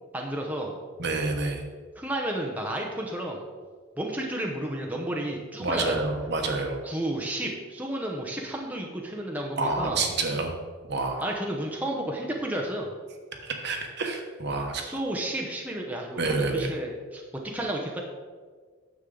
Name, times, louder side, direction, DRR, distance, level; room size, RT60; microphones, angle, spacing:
voice 1, 0.1-0.8 2.0-3.4 4.0-6.0 6.8-10.0 11.2-12.9 14.8-17.2 17.5-18.0, right 1 dB, 5° right, -1 dB, 0.8 m, -32 dB
voice 2, 1.0-1.6 5.6-6.8 9.6-10.5 10.9-11.4 13.4-15.0 16.2-16.7, right 3 dB, 50° right, 3 dB, 1.2 m, -28 dB
9.8 x 7.4 x 3.9 m, 1.5 s
head